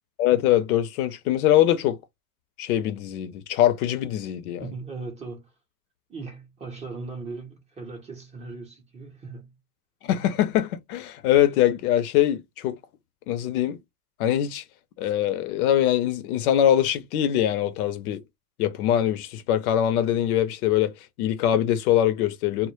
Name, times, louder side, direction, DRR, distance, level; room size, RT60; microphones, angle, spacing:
voice 1, 0.2-2.0 2.6-4.7 10.0-12.8 13.3-13.8 14.2-14.6 15.0-18.2 18.6-22.7, left 11 dB, 65° left, 0.6 m, -23 dB
voice 2, 4.6-5.5 6.1-9.5, right 3 dB, 15° right, 0.6 m, -38 dB
2.1 x 2.0 x 2.9 m
hypercardioid pair, 120°, 49 cm